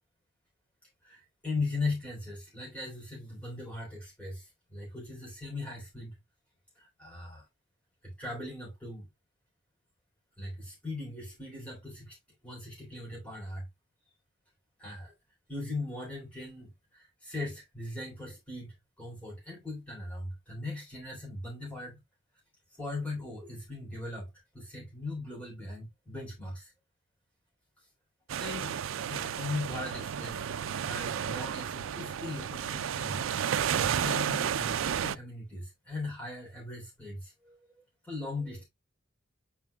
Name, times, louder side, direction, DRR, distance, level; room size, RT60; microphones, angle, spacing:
voice 1, 1.0-6.2 6.7-7.4 8.0-9.1 10.4-12.2 12.4-13.7 14.8-15.1 15.5-22.0 22.8-24.3 24.5-26.7 28.4-28.8 29.1-30.5 30.8-33.2 33.7-37.6 38.0-38.6, left 2 dB, 5° left, 3.3 m, -39 dB
sound 1, 28.3-35.2, right 8 dB, 80° right, 0.4 m, -32 dB
9.3 x 4.7 x 2.3 m
head